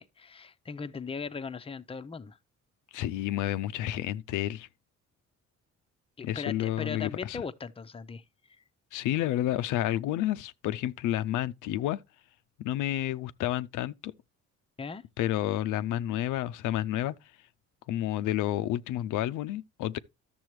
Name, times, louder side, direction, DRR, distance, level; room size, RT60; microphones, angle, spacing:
voice 1, 0.0-2.4 6.2-8.2 14.8-15.0, left 5 dB, 20° left, 0.6 m, -38 dB
voice 2, 2.9-4.7 6.2-7.4 8.9-12.0 12.6-14.1 15.2-17.1 17.9-20.0, left 13 dB, 85° left, 0.5 m, -30 dB
12.0 x 6.8 x 3.1 m
cardioid pair, 90°, 30 cm